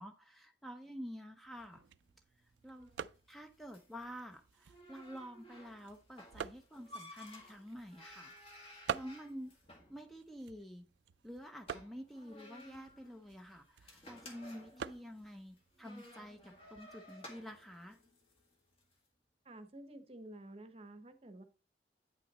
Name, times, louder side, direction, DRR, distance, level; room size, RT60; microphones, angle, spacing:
voice 1, 0.0-1.8 2.6-2.9 3.3-9.5 9.9-10.9 11.2-18.0, equal, ahead, 5 dB, 0.5 m, -49 dB
sound 1, 1.4-17.0, right 7 dB, 75° right, 0.4 m, -49 dB
sound 2, 1.7-19.0, left 1 dB, 30° left, 1.7 m, -57 dB
voice 2, 19.5-21.4, right 1 dB, 35° right, 9 dB, 0.9 m, -51 dB
8.7 x 5.7 x 4.0 m, 0.34 s
head